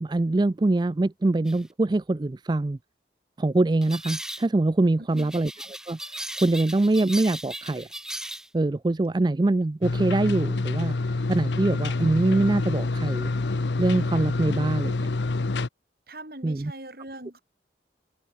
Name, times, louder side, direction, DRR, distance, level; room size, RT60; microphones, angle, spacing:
voice 1, 0.0-2.8 3.4-5.5 5.9-7.9 8.5-13.3 13.8-15.1 16.4-16.7, right 2 dB, 25° right, 0.4 m, -24 dB
sound 1, 1.5-1.6 3.8-4.5 5.2-8.5, right 1 dB, 5° right, 2.8 m, -37 dB
sound 2, 9.8-15.7, left 3 dB, 80° left, 0.8 m, -27 dB
voice 2, 16.1-17.4, right 1 dB, 55° right, 7.1 m, -41 dB
head